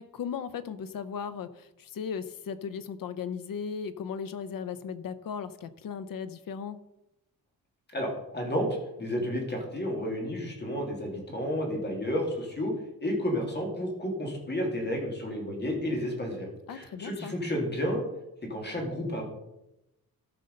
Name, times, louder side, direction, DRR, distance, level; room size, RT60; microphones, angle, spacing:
voice 1, 0.0-6.8 16.7-17.3, left 7 dB, 65° left, 14 dB, 0.8 m, -37 dB
voice 2, 7.9-8.7 9.0-12.7 13.0-18.0 18.5-19.2, equal, 30° left, 0 dB, 2.7 m, -31 dB
13.5 x 5.5 x 5.3 m, 0.90 s
wide cardioid pair, 140°, 36 cm